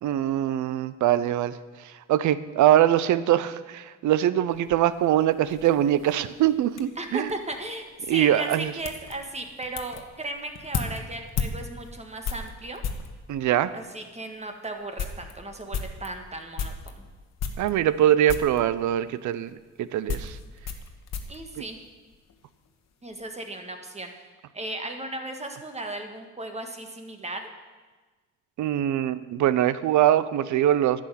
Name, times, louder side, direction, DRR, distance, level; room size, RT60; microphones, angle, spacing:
voice 1, 0.0-1.6 2.1-7.3 8.1-8.7 13.3-13.7 17.6-20.4 28.6-31.0, right 12 dB, 75° right, 16 dB, 0.6 m, -23 dB
sound 1, 4.5-13.2 13.9-14.0 14.4-14.5 14.8-17.0 17.4-18.0 18.3-18.6 19.5-22.4 22.7-23.2, left 6 dB, 60° left, 1.2 m, -35 dB
voice 2, 7.0-12.8 13.7-17.1 21.3-21.8 23.0-24.1 24.5-27.5, right 2 dB, 20° right, 5 dB, 1.6 m, -36 dB
11.0 x 6.2 x 9.1 m, 1.3 s
cardioid pair, 90°, 30 cm